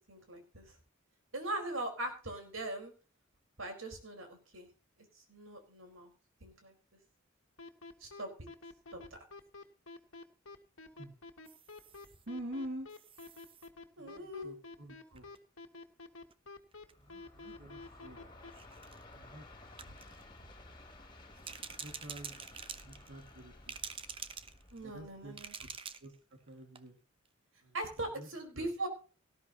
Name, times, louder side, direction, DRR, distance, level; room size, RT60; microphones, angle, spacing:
voice 1, 0.1-0.8 1.3-2.9 3.6-4.7 5.3-6.1 6.4-6.7 8.0-8.3 8.9-9.0 14.0-14.5 19.8-19.9 24.7-25.5 27.7-28.9, right 1 dB, 75° right, 4 dB, 4.4 m, -40 dB
sound 1, 7.6-18.5, left 3 dB, 75° left, 1.8 m, -49 dB
sound 2, 11.4-12.2 12.9-13.7 15.2-15.4 16.3-16.4 16.7-16.9 17.7-17.8 18.5-19.0 19.8-20.2 21.3-23.4 23.7-24.9 25.3-26.2 26.5-26.6 26.7-26.8, right 6 dB, 25° right, 0.8 m, -47 dB
voice 2, 12.3-12.9 14.0-15.2 17.0-18.3 19.1-19.5 21.7-22.4 22.8-23.8 24.8-25.3 25.6-25.7 26.0-27.0 27.6-27.7 28.2-28.3 28.5-28.7, right 1 dB, 60° right, 3 dB, 2.1 m, -47 dB
Train, 16.8-26.0, left 2 dB, 25° left, 3.4 m, -55 dB
18.5 x 13.5 x 2.9 m, 0.36 s
head